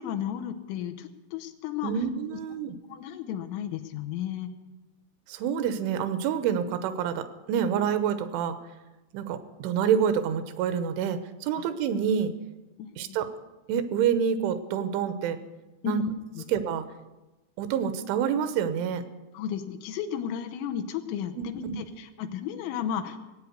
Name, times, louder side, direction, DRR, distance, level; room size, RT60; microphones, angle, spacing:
voice 1, 0.0-1.9 2.3-2.4 2.9-4.5 11.6-11.7 12.8-13.2 15.8-16.5 19.3-23.2, left 9 dB, 90° left, 7 dB, 3.4 m, -34 dB
voice 2, 1.8-2.8 5.3-8.6 9.1-12.3 13.0-13.3 13.7-15.4 15.8-16.0 16.5-16.9 17.6-19.0 21.4-21.8, right 8 dB, 80° right, 11 dB, 3.3 m, -27 dB
18.5 x 8.5 x 8.0 m, 1.1 s
omnidirectional pair, 5.5 m